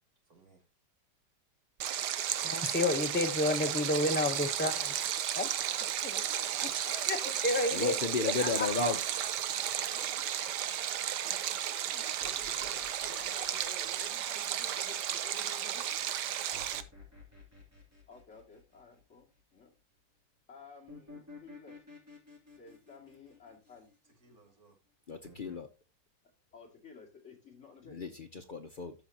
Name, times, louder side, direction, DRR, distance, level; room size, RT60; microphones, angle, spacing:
voice 1, 0.3-0.6 6.0-6.5 6.8-9.3 9.7-11.2 11.6-13.1 24.2-24.8, right 3 dB, 55° right, 2.8 m, -53 dB
Stream, 1.8-16.8, right 10 dB, 75° right, 1.3 m, -34 dB
voice 2, 2.4-5.1 5.4-5.5 6.0-6.2 6.6-6.7 7.1-7.2 7.4-7.9 8.4-8.7, left 2 dB, 15° left, 0.4 m, -30 dB
voice 3, 7.7-9.0 25.1-25.7 27.9-28.9, left 4 dB, 85° left, 0.4 m, -33 dB
sound 1, 9.0-10.6 12.2-14.9 16.5-19.4 20.9-24.3 25.2-25.6, left 3 dB, 10° right, 2.8 m, -54 dB
voice 4, 12.7-15.9 18.1-19.7 20.5-21.7 22.6-23.9 26.5-28.0, left 4 dB, 40° left, 2.8 m, -53 dB
14.0 x 5.1 x 2.9 m
omnidirectional pair, 1.9 m